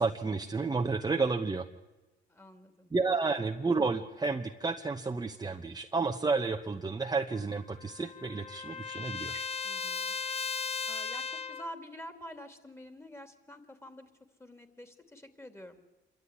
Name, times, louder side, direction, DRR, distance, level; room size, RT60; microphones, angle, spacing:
voice 1, 0.0-1.7 2.9-9.4, right 4 dB, 20° right, 4 dB, 0.9 m, -31 dB
voice 2, 2.3-2.9 9.6-10.1 10.9-14.1 14.4-15.8, equal, 15° left, 8 dB, 2.7 m, -47 dB
Trumpet, 7.3-11.7, left 5 dB, 30° left, 0.8 m, -37 dB
26.5 x 12.5 x 9.7 m, 1.1 s
cardioid pair, 90°, 20 cm